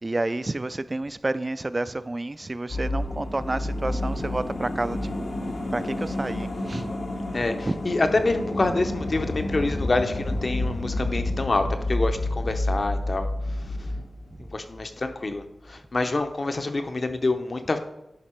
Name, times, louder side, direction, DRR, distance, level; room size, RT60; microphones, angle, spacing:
voice 1, 0.0-5.1 5.7-6.9 7.7-7.8, right 2 dB, 30° right, 14 dB, 0.3 m, -29 dB
sound 1, 2.7-15.1 15.4-15.5, left 1 dB, 80° left, 1.3 m, -30 dB
voice 2, 7.3-13.3 14.5-17.8, left 2 dB, 50° left, 7 dB, 0.7 m, -26 dB
11.0 x 4.0 x 4.4 m, 0.90 s
wide cardioid pair, 80°, 0 cm